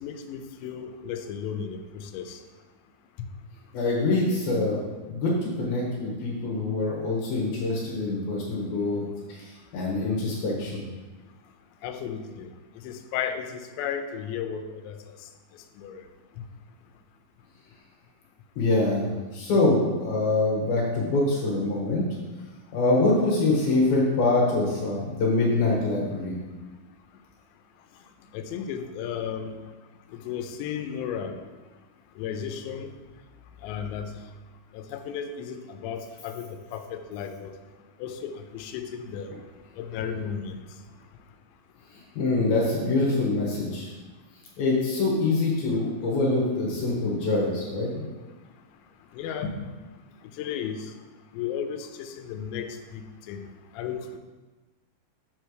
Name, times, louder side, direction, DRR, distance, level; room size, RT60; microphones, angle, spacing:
voice 1, 0.0-1.8 2.1-2.4 11.8-12.5 12.8-13.5 13.8-15.0 15.8-15.9 28.3-29.5 30.3-31.4 32.2-32.9 33.6-34.1 34.7-36.5 36.7-37.5 38.0-39.3 39.8-40.6 49.2-49.5 50.4-50.8 51.3-52.7 53.3-53.4 53.8-54.2, left 8 dB, 85° left, 7 dB, 2.8 m, -34 dB
voice 2, 3.7-4.8 5.1-9.0 9.3-10.8 18.6-22.1 22.7-26.4 42.2-43.9 44.6-48.1 49.4-49.5, left 2 dB, 65° left, -4 dB, 2.7 m, -25 dB
8.0 x 3.3 x 6.2 m, 1.2 s
omnidirectional pair, 5.2 m